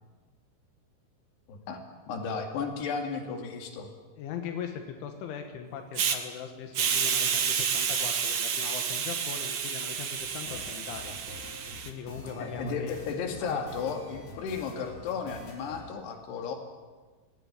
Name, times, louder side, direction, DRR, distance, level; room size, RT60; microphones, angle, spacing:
voice 1, 1.5-1.8 2.1-3.9 12.4-16.6, left 5 dB, 65° left, 4 dB, 4.3 m, -34 dB
voice 2, 4.2-11.2 11.8-13.0 13.4-13.6, left 7 dB, 85° left, 5 dB, 3.9 m, -40 dB
Hiss, 5.9-6.2 6.7-11.9, right 7 dB, 80° right, 1.3 m, -30 dB
sound 1, 10.2-15.8, left 1 dB, 35° left, 4.3 m, -46 dB
19.0 x 18.0 x 9.7 m, 1.4 s
omnidirectional pair, 5.3 m